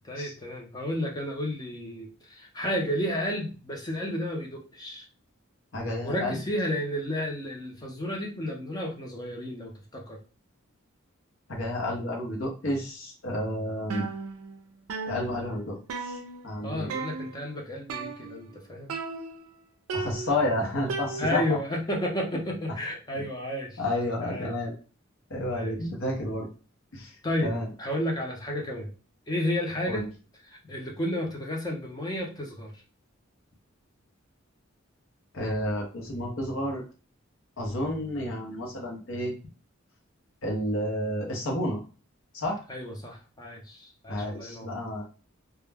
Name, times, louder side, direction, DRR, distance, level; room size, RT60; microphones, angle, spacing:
voice 1, 0.0-5.1 6.0-10.2 16.6-19.0 21.2-23.8 24.2-24.5 25.5-25.8 27.2-28.9 29.3-30.1 30.4-32.7 42.7-44.7, left 1 dB, 20° left, 0 dB, 0.5 m, -32 dB
voice 2, 5.7-6.4 11.5-14.1 15.1-16.2 16.4-16.9 19.9-21.6 23.1-23.2 23.8-24.7 25.3-26.5 26.9-27.1 27.4-27.7 29.9-30.1 35.3-36.8 37.6-39.3 40.4-41.8 42.3-42.6 44.1-45.1, left 1 dB, 65° left, -1 dB, 0.8 m, -30 dB
sound 1, 13.9-14.6 14.9-16.6 16.9-17.5 17.9-18.6 18.9-19.5 19.9-21.6, right 4 dB, 90° right, 0.4 m, -36 dB
2.3 x 2.0 x 3.3 m, 0.35 s
head